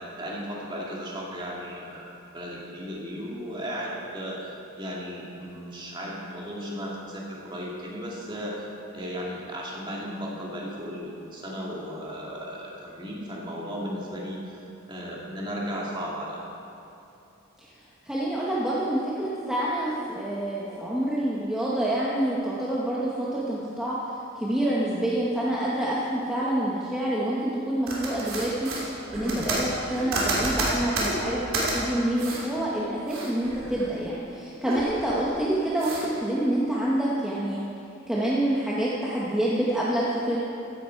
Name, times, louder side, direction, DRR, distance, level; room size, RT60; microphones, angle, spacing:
voice 1, 0.0-8.7 8.9-14.6 14.9-16.4, equal, 20° right, -4 dB, 2.1 m, -35 dB
voice 2, 18.0-24.0 24.4-37.6 38.1-40.4, right 1 dB, 5° right, -7 dB, 1.1 m, -27 dB
sound 1, 27.9-31.7 32.2-32.4 32.8-34.2 34.5-35.3 35.8-36.0, right 2 dB, 75° right, 3.1 m, -30 dB
15.5 x 10.5 x 4.5 m, 2.8 s
head